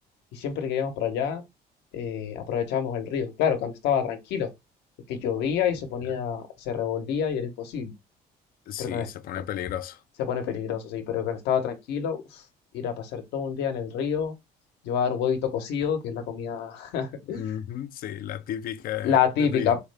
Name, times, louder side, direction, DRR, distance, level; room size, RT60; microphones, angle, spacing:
voice 1, 0.3-1.4 1.9-4.5 5.1-7.9 8.8-9.1 10.2-12.4 12.7-14.3 14.8-17.4 19.0-19.8, left 8 dB, 85° left, 1.0 m, -27 dB
voice 2, 8.7-10.0 17.3-19.7, left 11 dB, 60° left, 0.4 m, -34 dB
4.8 x 2.2 x 3.3 m
cardioid pair, 110°, 17 cm